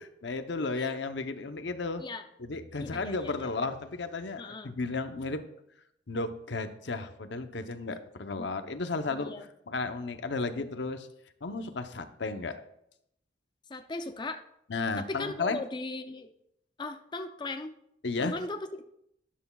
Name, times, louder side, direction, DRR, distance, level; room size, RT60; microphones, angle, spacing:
voice 1, 0.2-2.0 2.4-5.4 6.1-11.1 11.4-12.6 14.7-15.6 18.0-18.4, left 3 dB, 75° left, 8 dB, 0.8 m, -34 dB
voice 2, 2.7-3.5 4.4-4.8 8.4-8.5 9.1-9.4 13.7-14.4 15.0-16.3 16.8-17.7 18.2-18.6, left 2 dB, 25° left, 7 dB, 0.5 m, -38 dB
12.5 x 10.0 x 2.3 m, 0.76 s
head